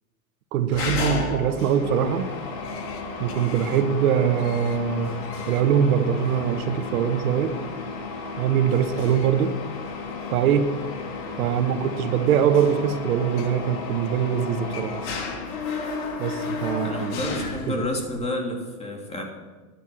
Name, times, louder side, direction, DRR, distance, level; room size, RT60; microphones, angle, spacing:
voice 1, 0.5-2.3 3.2-5.1 5.5-7.6 8.4-9.6 10.3-10.7 11.4-15.0 16.2-17.2 17.7-17.9, right 8 dB, 70° right, 8 dB, 1.7 m, -23 dB
Mechanisms, 0.7-18.1, left 4 dB, 60° left, 3.5 m, -33 dB
sound 1, 2.6-3.0 3.3-3.8 4.4-4.8 5.2-5.6 8.9-9.3 10.1-10.2 11.4-11.5 13.2-13.5 14.4-14.5 14.7-15.1, left 8 dB, 30° left, 1.3 m, -45 dB
voice 2, 3.5-3.8 8.9-9.0 11.2-11.4 16.8-19.2, left 1 dB, 15° left, 1 dB, 2.8 m, -31 dB
12.0 x 10.0 x 7.6 m, 1.3 s
supercardioid pair, 135°, 45 cm